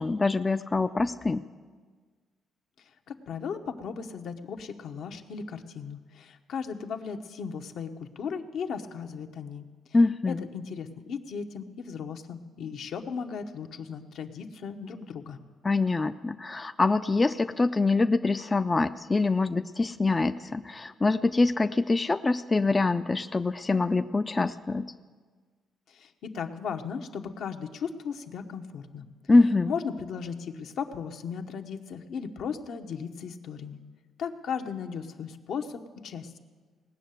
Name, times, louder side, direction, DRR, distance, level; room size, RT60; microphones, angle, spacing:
voice 1, 0.0-1.4 9.9-10.4 15.6-24.9 29.3-29.7, left 3 dB, 25° left, 9 dB, 0.4 m, -24 dB
voice 2, 3.1-9.7 10.3-15.4 25.9-29.1 29.7-33.8 34.2-36.4, left 6 dB, 70° left, 5 dB, 0.9 m, -36 dB
18.0 x 6.6 x 9.1 m, 1.5 s
cardioid pair, 90°, 0 cm